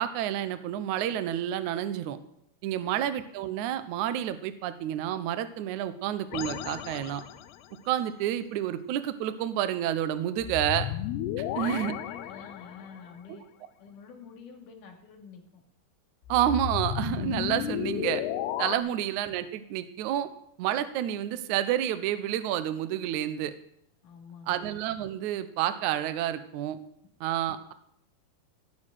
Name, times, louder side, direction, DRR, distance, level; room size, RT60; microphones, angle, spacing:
voice 1, 0.0-2.2 2.6-7.2 7.9-10.9 11.4-12.0 13.3-13.4 16.3-18.2 18.6-20.3 20.6-23.5 24.5-26.8 27.2-27.7, right 11 dB, 80° right, 11 dB, 1.7 m, -29 dB
voice 2, 2.7-3.0 11.8-13.4 13.8-15.6 18.8-18.9 24.0-24.7, left 5 dB, 55° left, 2 dB, 3.7 m, -48 dB
sound 1, 6.3-7.7 10.4-13.1 16.2-18.8, left 11 dB, 80° left, 2.8 m, -33 dB
17.0 x 6.6 x 9.1 m, 0.72 s
omnidirectional pair, 4.8 m